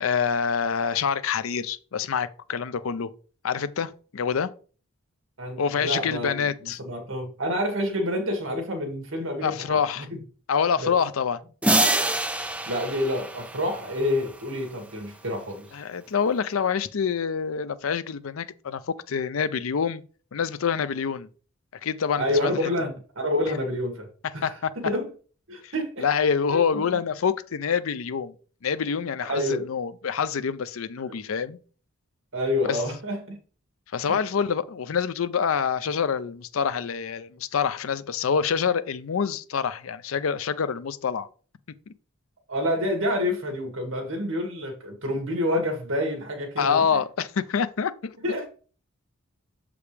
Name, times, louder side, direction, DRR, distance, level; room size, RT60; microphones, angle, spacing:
voice 1, 0.0-3.1 3.4-4.5 5.6-6.8 9.4-10.1 10.5-11.4 15.7-20.0 20.3-21.3 21.8-22.7 24.4-24.7 25.6-25.7 26.0-28.3 28.6-31.6 32.7-32.8 33.9-41.3 46.6-48.2, left 6 dB, 75° left, 0.5 m, -26 dB
voice 2, 5.4-10.2 10.8-10.9 12.7-15.7 22.2-24.1 24.3-24.5 24.8-25.1 25.5-26.0 26.5-26.6 29.2-29.6 32.3-33.4 42.5-46.8 48.2-48.5, left 1 dB, 70° right, 2.1 m, -28 dB
sound 1, 11.6-14.1, right 1 dB, 5° right, 0.5 m, -25 dB
7.0 x 5.0 x 3.3 m
head